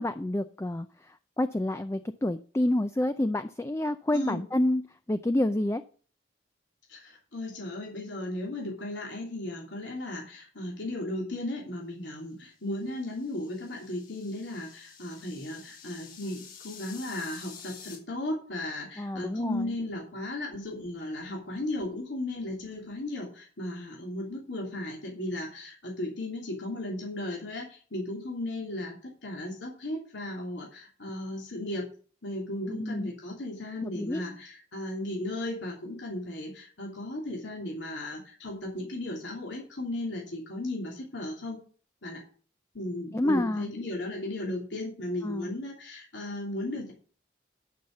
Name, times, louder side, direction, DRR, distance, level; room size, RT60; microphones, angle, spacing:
voice 1, 0.0-5.8 19.0-19.7 32.7-33.1 33.8-34.2 43.1-43.7 45.2-45.5, left 1 dB, 15° left, 10 dB, 0.4 m, -29 dB
voice 2, 6.9-31.8 32.2-41.6 42.0-42.2 42.7-46.9, left 1 dB, 80° left, -2 dB, 3.1 m, -36 dB
sound 1, 12.8-18.0, left 7 dB, 45° left, 3.8 m, -49 dB
11.5 x 5.7 x 6.5 m, 0.41 s
head